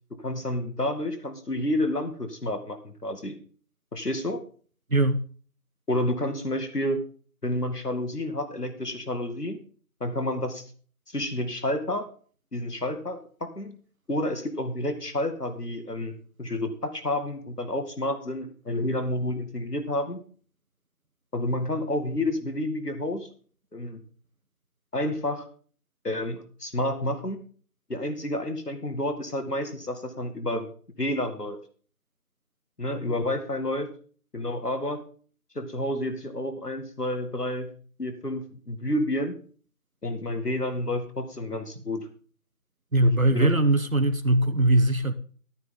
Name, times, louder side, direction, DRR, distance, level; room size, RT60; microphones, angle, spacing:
voice 1, 0.2-3.4 3.9-4.4 5.9-7.0 7.4-9.6 10.0-10.6 11.1-12.1 12.5-13.8 14.1-20.2 21.3-23.3 23.7-24.0 24.9-25.5 26.0-27.4 27.9-30.7 31.0-31.6 32.8-33.9 34.3-35.0 35.6-37.7 38.0-39.3 40.0-42.1 43.0-43.6, left 1 dB, 85° left, 2.2 m, -30 dB
voice 2, 42.9-45.1, right 1 dB, 60° right, 1.1 m, -21 dB
13.5 x 9.5 x 3.9 m
figure-of-eight pair, 180°, 46 cm